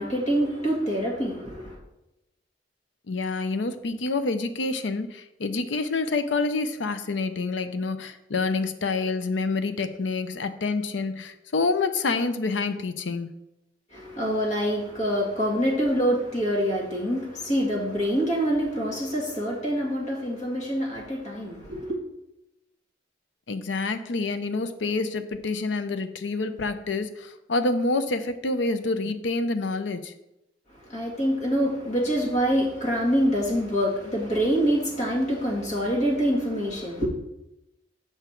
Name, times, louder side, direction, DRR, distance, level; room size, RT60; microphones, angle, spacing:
voice 1, 0.0-1.8 13.9-22.0 30.7-37.1, equal, 40° left, 1.9 m, -25 dB
voice 2, 3.1-13.3 23.5-30.1, left 3 dB, 90° left, 0.6 m, -27 dB
7.0 x 5.8 x 4.5 m
head